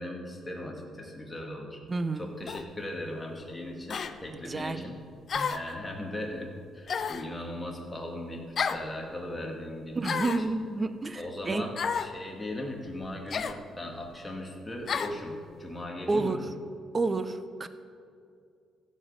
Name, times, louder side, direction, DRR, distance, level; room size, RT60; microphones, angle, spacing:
voice 1, 0.0-1.8 2.2-5.0 5.5-10.2 11.2-16.4, left 1 dB, 15° left, 0 dB, 2.2 m, -38 dB
voice 2, 1.9-2.3 4.4-4.8 5.3-5.6 9.9-11.7 16.1-16.5 16.9-17.7, right 3 dB, 30° right, 11 dB, 0.7 m, -30 dB
sound 1, 2.5-2.7 3.9-4.1 5.3-5.7 6.9-7.3 8.6-8.9 10.0-10.5 11.8-12.1 13.3-13.6 14.9-15.2, left 6 dB, 50° left, 0.6 m, -31 dB
15.5 x 5.4 x 6.6 m, 2.4 s
cardioid pair, 90°, 0 cm